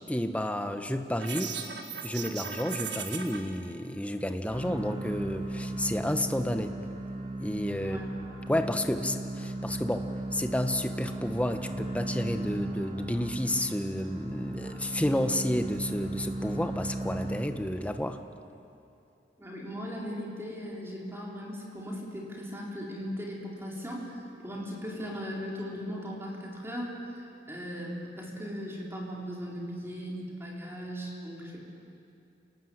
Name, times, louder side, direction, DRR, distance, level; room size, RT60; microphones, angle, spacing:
voice 1, 0.1-1.5 2.0-6.8 7.4-8.0 8.5-18.2, left 1 dB, 10° left, 7 dB, 1.1 m, -31 dB
sound 1, 1.2-3.4, right 6 dB, 70° right, 2.2 m, -37 dB
sound 2, 4.5-17.9, right 1 dB, 35° right, 3.0 m, -36 dB
voice 2, 19.4-31.7, equal, 15° right, -3 dB, 4.2 m, -38 dB
28.0 x 19.0 x 8.0 m, 2.6 s
head